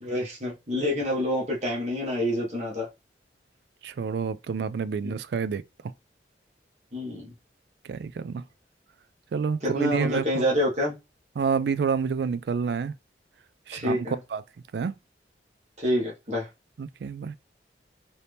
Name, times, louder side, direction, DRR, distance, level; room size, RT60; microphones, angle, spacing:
voice 1, 0.0-2.9 5.0-5.1 6.9-7.3 9.6-10.9 13.7-14.2 15.8-16.5, left 1 dB, 40° right, 1.6 m, -27 dB
voice 2, 3.8-5.6 7.8-8.4 9.3-10.5 11.4-12.9 13.7-14.4 14.7-14.9 16.8-17.4, right 6 dB, 65° right, 0.3 m, -28 dB
4.2 x 2.7 x 3.4 m
head